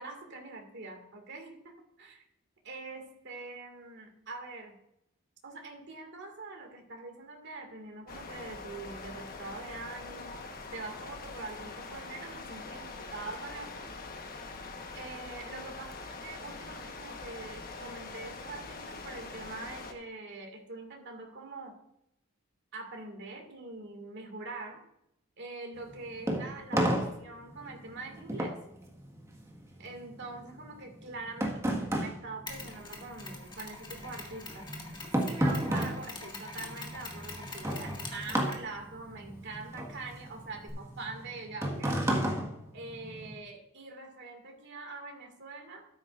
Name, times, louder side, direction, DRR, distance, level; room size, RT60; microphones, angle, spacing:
voice 1, 0.0-2.2 2.6-4.8 5.4-13.9 14.9-21.8 22.7-24.8 25.4-28.6 29.8-34.7 35.2-42.1 42.7-45.9, right 3 dB, 55° right, 3 dB, 2.1 m, -44 dB
sound 1, 8.1-19.9, left 3 dB, 45° left, 1.2 m, -43 dB
sound 2, 25.8-33.4 33.7-43.4, right 1 dB, 15° right, 1.6 m, -33 dB
Mechanisms, 32.5-40.7, left 3 dB, 20° left, 1.8 m, -46 dB
13.0 x 10.0 x 2.5 m, 0.80 s
head